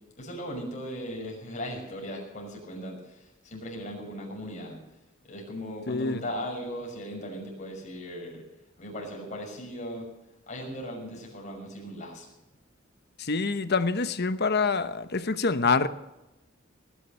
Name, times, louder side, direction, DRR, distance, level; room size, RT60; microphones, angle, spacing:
voice 1, 0.2-3.0 3.4-4.8 5.3-8.4 8.8-10.0 10.5-12.3, equal, 35° left, -1 dB, 6.2 m, -37 dB
voice 2, 5.9-6.2 13.2-15.9, left 4 dB, 55° left, 11 dB, 1.0 m, -26 dB
19.5 x 10.5 x 6.7 m, 0.94 s
head